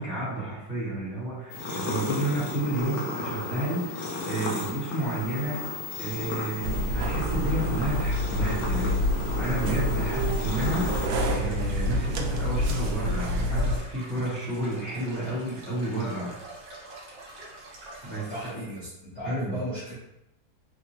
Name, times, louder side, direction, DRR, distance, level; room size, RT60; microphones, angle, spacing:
voice 1, 0.0-16.3 18.0-18.6 19.2-19.6, right 1 dB, 20° right, -12 dB, 1.5 m, -31 dB
sound 1, 1.5-11.1, left 3 dB, 70° left, 1.3 m, -34 dB
sound 2, 6.6-13.8, equal, 85° right, 0.8 m, -27 dB
sound 3, 10.0-18.5, right 2 dB, 65° right, 1.4 m, -45 dB
voice 2, 18.3-18.9 19.1-19.9, equal, 45° left, -11 dB, 1.3 m, -34 dB
3.6 x 2.8 x 2.8 m, 0.84 s
omnidirectional pair, 2.1 m